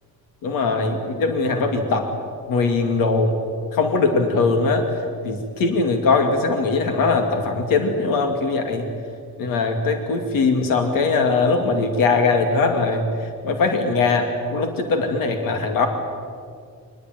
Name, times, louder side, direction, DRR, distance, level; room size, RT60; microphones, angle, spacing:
voice 1, 0.4-2.1 2.5-3.4 3.7-4.8 5.2-8.8 9.4-13.1 13.4-15.9, left 4 dB, 75° left, 5 dB, 2.5 m, -20 dB
25.0 x 20.0 x 9.4 m, 2.2 s
cardioid pair, 170°, 34 cm